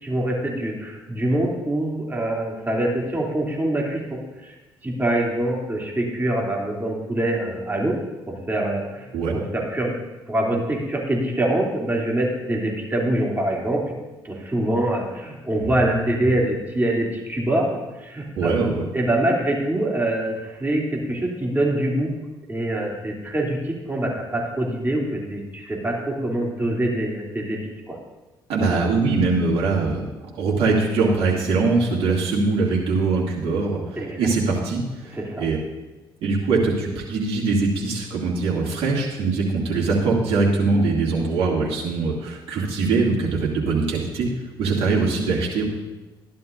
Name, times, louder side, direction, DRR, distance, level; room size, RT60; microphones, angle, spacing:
voice 1, 0.0-4.5 4.8-8.0 8.3-9.9 10.3-14.0 14.2-17.7 18.0-18.5 18.9-22.2 22.5-27.6 27.9-28.0 34.0-34.2 35.1-35.4, right 1 dB, 15° right, -3 dB, 3.1 m, -24 dB
voice 2, 15.6-16.1 18.4-18.9 28.5-30.1 30.4-33.8 34.2-35.6 36.2-44.3 44.6-45.6, right 3 dB, 60° right, -4 dB, 2.5 m, -22 dB
13.5 x 11.0 x 2.7 m, 1.1 s
hypercardioid pair, 50°, 11 cm